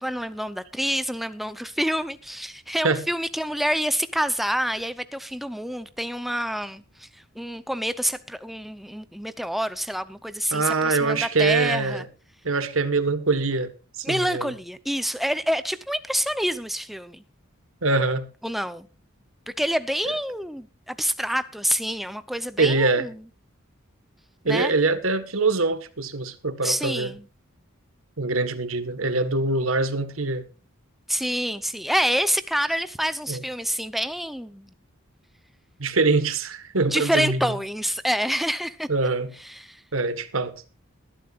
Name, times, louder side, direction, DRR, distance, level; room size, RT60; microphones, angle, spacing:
voice 1, 0.0-12.1 14.0-17.2 18.4-18.9 19.5-23.2 24.4-24.7 26.6-27.3 31.1-34.7 36.9-38.9 39.4-39.8, equal, ahead, 0.7 m, -27 dB
voice 2, 10.5-12.0 12.4-13.7 14.0-14.5 17.8-18.3 22.6-23.1 24.4-27.1 28.2-30.4 33.3-33.4 35.8-37.5 38.9-39.3 39.9-40.6, right 3 dB, 75° right, 1.6 m, -23 dB
21.0 x 11.5 x 2.5 m
head